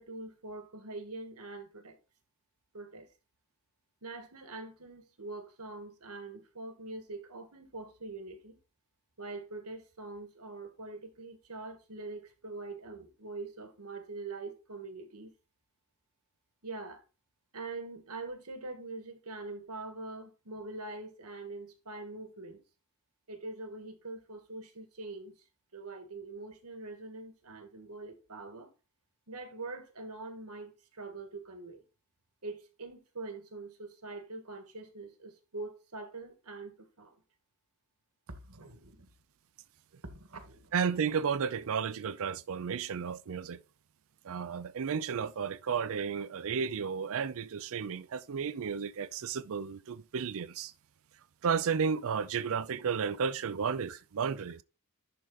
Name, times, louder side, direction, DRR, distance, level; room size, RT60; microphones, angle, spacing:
voice 1, 0.0-2.0 2.7-3.1 4.0-8.6 9.2-15.3 16.6-17.0 17.5-22.6 23.3-25.4 25.7-28.7 29.3-31.8 32.4-37.2 38.3-39.1 40.0-40.7 53.9-54.0, right 3 dB, 85° right, 1.8 m, -44 dB
voice 2, 40.7-43.6 44.2-50.7 51.4-54.6, right 6 dB, 65° right, 0.5 m, -33 dB
11.0 x 3.8 x 4.0 m
head